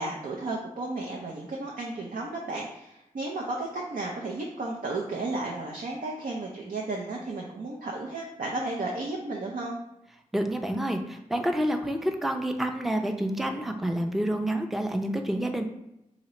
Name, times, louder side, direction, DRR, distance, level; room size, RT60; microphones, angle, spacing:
voice 1, 0.0-9.8, right 2 dB, 80° right, -1 dB, 0.5 m, -33 dB
voice 2, 10.3-15.6, right 1 dB, ahead, 5 dB, 0.4 m, -28 dB
2.9 x 2.8 x 4.2 m, 0.87 s
cardioid pair, 50°, 14 cm